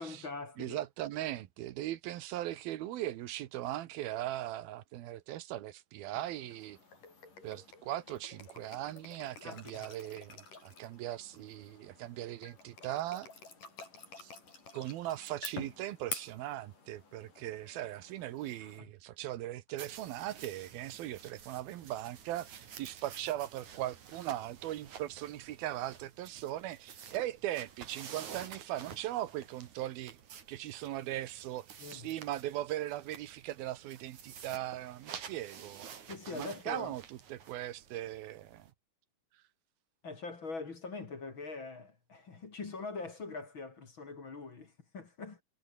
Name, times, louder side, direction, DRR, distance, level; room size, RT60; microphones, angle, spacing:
voice 1, 0.0-0.8 9.4-9.9 18.6-18.9 31.8-32.1 36.1-36.9 40.0-45.4, left 4 dB, 35° left, 3.0 m, -43 dB
voice 2, 0.6-6.8 7.4-13.3 14.2-14.3 14.7-30.2 30.5-31.7 31.9-35.9 36.3-38.7, right 14 dB, 80° right, 2.9 m, -39 dB
sound 1, 6.1-18.8, left 4 dB, 60° left, 8.4 m, -49 dB
sound 2, 19.8-38.7, right 7 dB, 55° right, 3.8 m, -51 dB
omnidirectional pair, 4.3 m